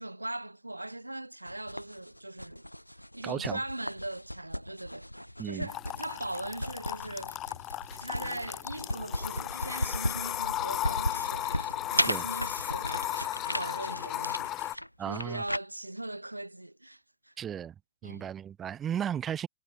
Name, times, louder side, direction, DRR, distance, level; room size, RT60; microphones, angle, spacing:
voice 1, 0.0-2.7 2.9-7.4 8.0-13.2 13.5-14.6 15.1-17.3 18.0-18.3, right 1 dB, 85° right, 0.8 m, -40 dB
sound 1, 1.5-15.6, equal, 90° left, 0.7 m, -36 dB
voice 2, 3.2-3.6 5.4-5.7 12.1-12.3 15.0-15.4 17.4-17.7 18.0-19.5, right 9 dB, 25° right, 0.8 m, -35 dB
sound 2, 5.7-14.8, left 14 dB, 35° left, 0.9 m, -35 dB
figure-of-eight pair, 90°, 0 cm